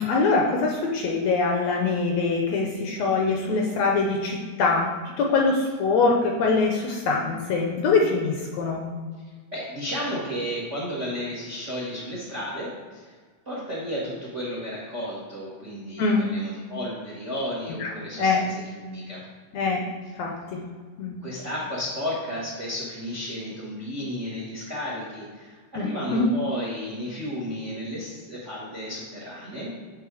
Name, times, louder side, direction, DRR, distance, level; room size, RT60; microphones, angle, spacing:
voice 1, 0.0-8.8 16.0-16.3 17.8-17.9 18.2-18.4 19.5-19.8 20.2-20.6 21.0-21.2 25.8-26.3, left 4 dB, 75° left, 1 dB, 1.7 m, -23 dB
voice 2, 9.5-13.2 13.4-19.2 21.2-29.7, equal, 50° right, -5 dB, 0.8 m, -33 dB
8.5 x 3.7 x 4.8 m, 1.5 s
omnidirectional pair, 3.6 m